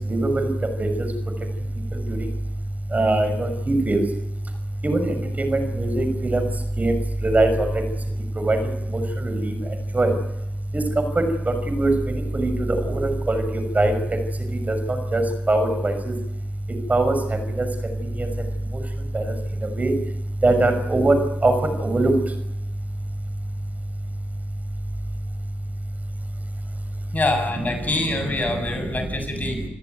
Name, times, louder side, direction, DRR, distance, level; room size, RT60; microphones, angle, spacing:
voice 1, 0.1-0.5 0.8-0.9 1.9-2.0 2.9-4.0 4.8-6.4 6.8-6.9 7.2-7.7 8.4-8.6 8.9-9.5 9.9-10.1 10.7-10.8 11.1-11.2 11.7-11.9 12.3-13.4 13.7-13.9 14.7-14.8 15.1-16.1 16.9-17.1 17.6-17.7 18.2-18.3 19.1-19.3 19.8-19.9 20.4-21.1 21.4-21.5 21.8-22.1, right 2 dB, 30° right, 7 dB, 6.4 m, -21 dB
voice 2, 27.1-29.6, left 2 dB, 30° left, 5 dB, 7.0 m, -25 dB
27.5 x 14.5 x 9.5 m, 0.88 s
supercardioid pair, 50°, 5 cm